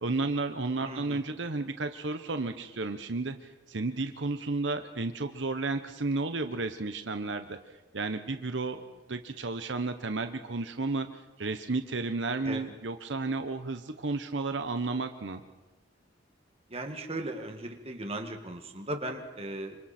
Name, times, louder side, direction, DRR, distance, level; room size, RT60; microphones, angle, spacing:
voice 1, 0.0-3.4 3.7-7.6 7.9-15.4, right 3 dB, 75° right, 8 dB, 1.0 m, -32 dB
voice 2, 0.8-1.2 12.4-12.7 16.7-19.8, right 1 dB, 35° right, 4 dB, 2.0 m, -37 dB
27.5 x 26.0 x 4.4 m, 1.1 s
head